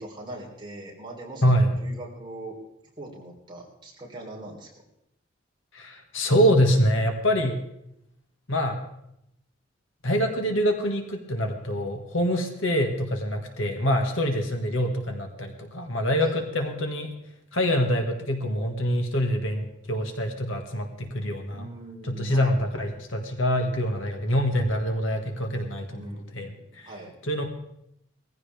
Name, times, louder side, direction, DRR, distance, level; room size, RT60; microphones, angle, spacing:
voice 1, 0.0-2.6 3.0-4.7 16.2-16.4 21.5-22.5 25.9-27.2, right 1 dB, 25° right, -3 dB, 3.6 m, -41 dB
voice 2, 5.7-7.6 8.5-8.8 10.0-17.1 17.5-21.7 22.1-26.9 27.2-27.5, equal, 70° left, 4 dB, 1.9 m, -25 dB
19.5 x 15.0 x 3.5 m, 0.80 s
head